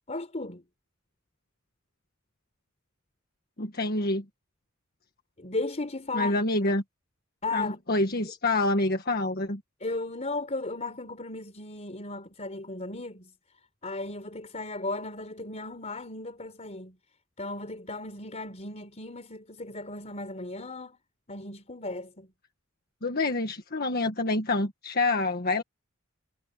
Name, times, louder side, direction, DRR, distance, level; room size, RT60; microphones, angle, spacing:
voice 1, 0.1-0.6 5.4-6.3 7.4-7.8 9.8-13.3 13.8-17.0 17.4-21.0 21.3-22.3, left 2 dB, 35° left, 3.8 m, -35 dB
voice 2, 3.6-4.2 6.1-6.8 7.5-9.6 23.0-25.6, left 2 dB, 50° left, 1.6 m, -27 dB
head